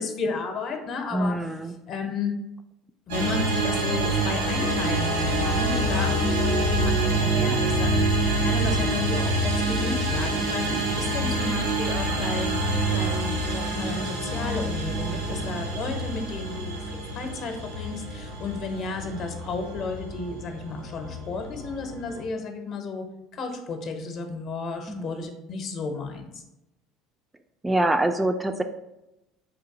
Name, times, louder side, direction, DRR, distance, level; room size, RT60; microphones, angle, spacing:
voice 1, 0.0-1.3 1.9-2.3 3.1-23.0 23.3-26.4, left 4 dB, 50° left, 5 dB, 0.7 m, -33 dB
voice 2, 1.1-1.7 24.9-25.3 27.6-28.6, right 1 dB, 15° right, 7 dB, 0.3 m, -26 dB
sound 1, 3.1-22.2, right 2 dB, 85° right, 1.3 m, -26 dB
4.0 x 2.5 x 3.7 m, 0.92 s
hypercardioid pair, 70°, 0 cm